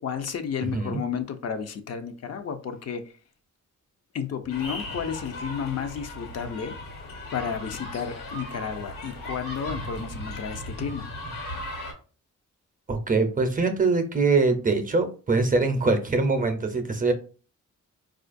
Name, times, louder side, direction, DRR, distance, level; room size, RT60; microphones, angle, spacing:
voice 1, 0.0-3.1 4.1-6.7 7.3-11.1, left 7 dB, 55° left, 0.5 m, -32 dB
voice 2, 0.6-1.0 12.9-17.1, right 3 dB, 25° right, 0.5 m, -23 dB
sound 1, 4.5-11.9, left 1 dB, 85° left, 1.3 m, -37 dB
4.3 x 2.4 x 2.5 m
cardioid pair, 95°, 32 cm